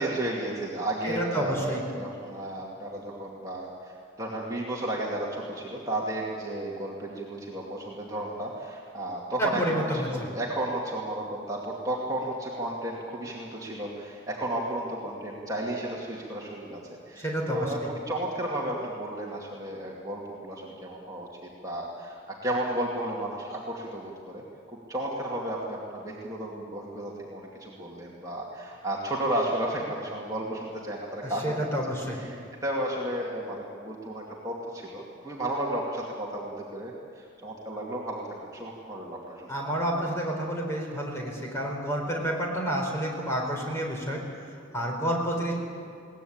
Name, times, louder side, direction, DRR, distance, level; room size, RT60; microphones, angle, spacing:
voice 1, 0.0-24.4 24.9-31.7 32.1-39.5, right 1 dB, 15° right, -4 dB, 2.3 m, -33 dB
voice 2, 1.0-1.8 9.4-10.1 17.2-17.7 31.2-32.2 39.5-44.2 44.7-45.5, right 1 dB, 15° left, -1 dB, 4.2 m, -29 dB
22.0 x 18.0 x 8.8 m, 2.4 s
head